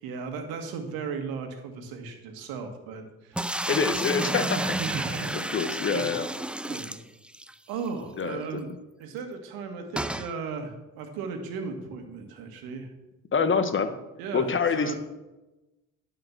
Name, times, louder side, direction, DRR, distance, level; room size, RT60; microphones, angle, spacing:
voice 1, 0.0-3.4 4.6-6.2 6.6-7.0 7.7-8.7 9.0-12.9 14.2-15.0, right 5 dB, 75° right, 6 dB, 1.7 m, -36 dB
sound 1, 3.4-7.5 7.9-8.0 8.2-8.3 10.0-10.3, right 1 dB, 5° right, 0.5 m, -31 dB
voice 2, 3.7-4.6 5.3-6.3 8.2-8.8 13.3-13.9 14.3-15.0, left 5 dB, 35° left, 9 dB, 1.3 m, -26 dB
11.5 x 5.0 x 6.0 m, 1.0 s
hypercardioid pair, 65°, 36 cm